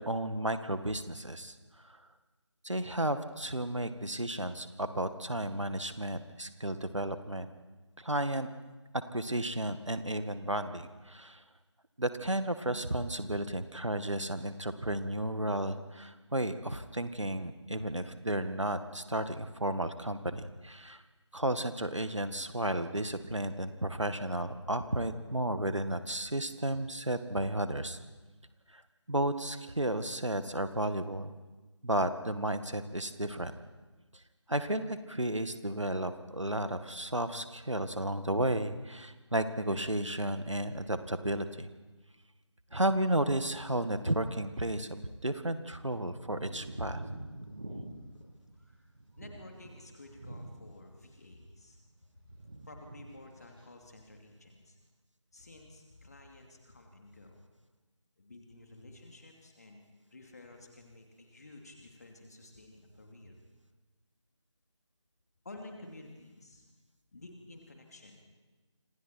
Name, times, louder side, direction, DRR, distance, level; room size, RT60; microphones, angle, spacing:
voice 1, 0.0-1.6 1.8-2.0 2.6-7.5 8.0-8.5 8.9-11.4 12.0-21.0 21.3-28.0 28.7-28.8 29.1-31.3 31.8-33.5 34.5-41.7 42.7-47.0, right 1 dB, 80° right, 10 dB, 2.0 m, -33 dB
sound 1, 46.1-51.1 51.3-52.0 52.2-53.0 53.3-53.7, right 1 dB, 50° right, 7.7 m, -46 dB
voice 2, 49.2-51.8 52.6-54.8 55.3-57.4 58.2-59.9 60.1-63.4 65.4-66.6 67.1-68.2, left 2 dB, 35° left, 2 dB, 2.8 m, -52 dB
28.0 x 26.5 x 4.6 m, 1.2 s
figure-of-eight pair, 165°, 16 cm